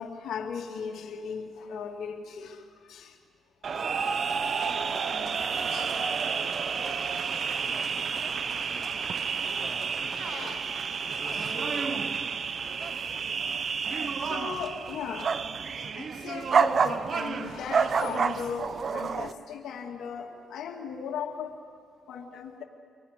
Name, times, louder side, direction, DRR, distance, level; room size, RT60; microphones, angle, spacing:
voice 1, 0.0-3.2 5.7-5.9 10.1-11.1 13.9-15.4 15.9-21.6 22.1-22.6, left 6 dB, 75° left, 2 dB, 2.2 m, -37 dB
sound 1, 3.6-19.3, right 6 dB, 50° right, 0.8 m, -30 dB
voice 2, 4.5-9.3 9.6-10.6 11.2-12.4, left 1 dB, 15° right, 0 dB, 7.2 m, -48 dB
25.0 x 17.5 x 9.7 m, 2.2 s
cardioid pair, 90°, 0 cm